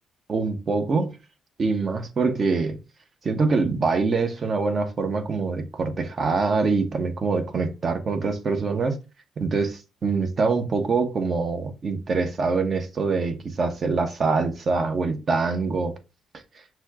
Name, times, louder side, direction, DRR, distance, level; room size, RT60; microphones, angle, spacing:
voice 1, 0.3-1.2 1.6-2.8 3.2-9.0 9.4-15.9, right 4 dB, 45° right, 0.9 m, -24 dB
6.1 x 2.3 x 3.6 m
cardioid pair, 90°, 0 cm